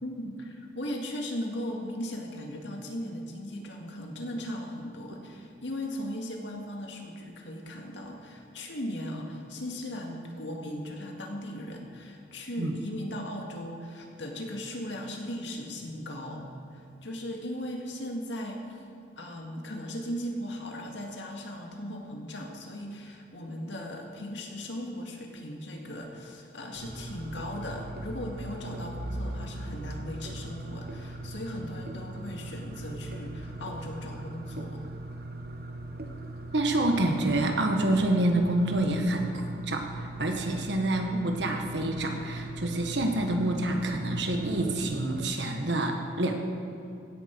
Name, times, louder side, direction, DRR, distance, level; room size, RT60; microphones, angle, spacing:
voice 1, 0.0-16.5 16.7-18.6 19.2-34.8, equal, 80° left, 1 dB, 2.0 m, -37 dB
sound 1, 26.7-45.3, right 2 dB, 55° right, 0.9 m, -39 dB
voice 2, 36.5-39.4 39.7-46.3, right 1 dB, 75° right, 3 dB, 1.5 m, -27 dB
16.0 x 11.0 x 4.7 m, 2.6 s
head